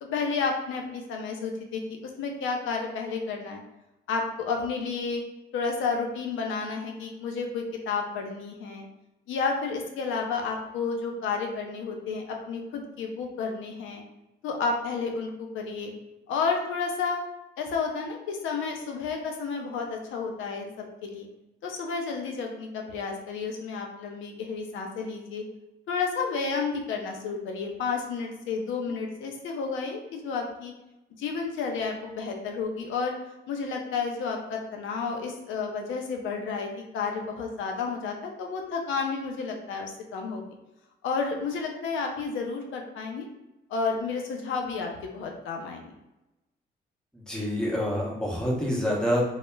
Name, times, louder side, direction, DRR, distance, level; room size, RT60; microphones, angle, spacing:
voice 1, 0.0-3.6 4.1-5.2 5.5-8.9 9.3-14.0 14.4-15.9 16.3-17.2 17.6-21.3 21.6-25.4 25.9-30.7 31.2-33.1 33.5-40.4 41.0-43.3 43.7-45.9, left 4 dB, 80° left, 2 dB, 0.5 m, -31 dB
voice 2, 47.1-49.3, equal, 5° left, -4 dB, 0.8 m, -27 dB
2.2 x 2.0 x 3.1 m, 0.97 s
cardioid pair, 90°, 20 cm